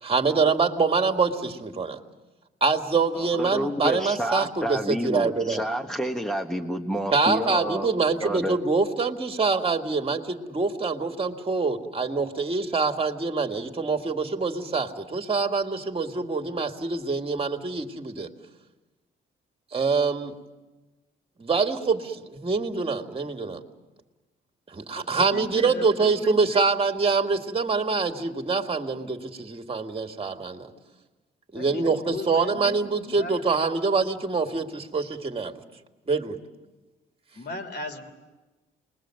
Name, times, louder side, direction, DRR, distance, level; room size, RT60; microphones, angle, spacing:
voice 1, 0.0-2.0 2.6-5.6 7.1-18.3 19.7-20.3 21.4-23.6 24.7-30.7 31.5-35.5 36.1-36.4, right 4 dB, 30° right, 5 dB, 2.2 m, -25 dB
voice 2, 3.1-7.9 8.2-8.6, equal, 5° left, 3 dB, 1.3 m, -29 dB
voice 3, 25.0-26.3 31.5-32.8 33.1-33.4 37.3-38.1, left 3 dB, 55° left, 7 dB, 3.3 m, -37 dB
29.0 x 21.5 x 7.8 m, 1.2 s
cardioid pair, 90°, 20 cm